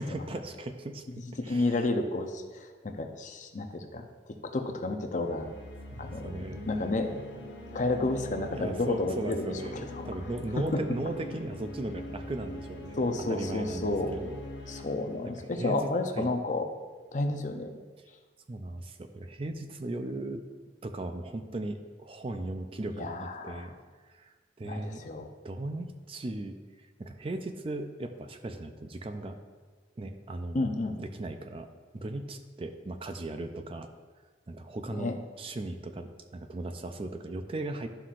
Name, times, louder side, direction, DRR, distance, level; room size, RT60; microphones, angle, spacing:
voice 1, 0.0-1.9 5.9-6.7 8.5-13.0 13.3-14.8 15.2-16.3 18.5-20.4 20.8-23.7 24.1-29.4 30.0-30.7 31.0-33.9 34.5-37.9, right 2 dB, 30° right, 7 dB, 0.4 m, -38 dB
voice 2, 1.5-5.5 6.0-7.2 7.7-9.5 9.9-10.0 10.6-10.7 13.0-14.1 14.7-16.7 17.1-17.7 23.0-23.7 24.6-25.3 30.5-31.0 34.9-35.2, left 2 dB, 45° left, 5 dB, 0.6 m, -31 dB
sound 1, 5.0-16.6, left 1 dB, 75° left, 1.0 m, -43 dB
11.5 x 5.7 x 2.5 m, 1.4 s
head